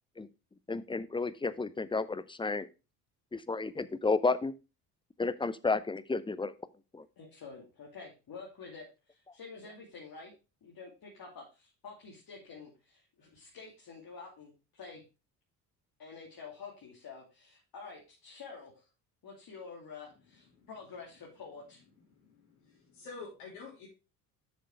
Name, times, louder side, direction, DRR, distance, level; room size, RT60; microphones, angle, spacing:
voice 1, 0.7-2.7 3.3-4.5 5.2-6.5 6.9-7.0, left 3 dB, 10° left, 15 dB, 0.7 m, -32 dB
voice 2, 7.2-10.3 10.6-15.0 16.0-18.9 19.2-21.8, left 4 dB, 50° left, -2 dB, 3.0 m, -48 dB
voice 3, 22.1-23.9, left 4 dB, 70° left, -5 dB, 3.2 m, -48 dB
7.9 x 6.6 x 4.7 m, 0.31 s
hypercardioid pair, 55°, 47 cm